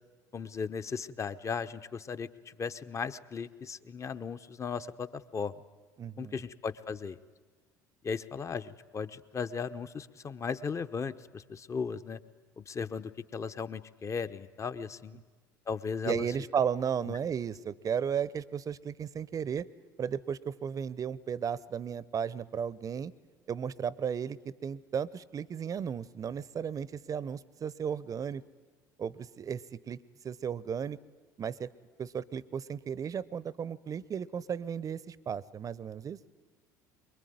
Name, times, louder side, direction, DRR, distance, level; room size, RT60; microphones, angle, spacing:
voice 1, 0.3-5.5 6.2-7.2 8.0-12.2 12.6-15.2 15.7-16.3 17.1-17.2, left 5 dB, 30° left, 11 dB, 0.9 m, -36 dB
voice 2, 6.0-6.4 16.0-19.7 20.0-23.1 23.5-28.4 29.0-29.6 29.9-30.0 30.2-31.0 31.4-31.7 32.0-36.2, right 7 dB, 35° right, 21 dB, 0.7 m, -34 dB
23.0 x 22.0 x 9.5 m, 1.4 s
hypercardioid pair, 65°, 10 cm